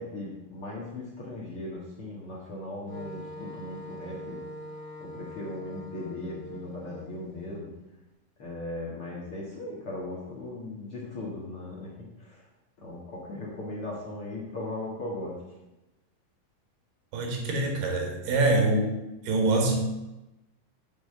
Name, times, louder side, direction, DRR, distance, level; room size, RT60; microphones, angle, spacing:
voice 1, 0.0-4.4 5.0-7.7 8.4-12.5 12.8-15.4, left 2 dB, 50° left, -4 dB, 1.9 m, -38 dB
Wind instrument woodwind instrument, 2.9-7.6, equal, 20° left, 1.3 m, -43 dB
voice 2, 17.1-18.9 19.2-19.8, right 2 dB, 80° right, 2 dB, 3.9 m, -25 dB
8.7 x 6.0 x 7.4 m, 0.98 s
omnidirectional pair, 4.6 m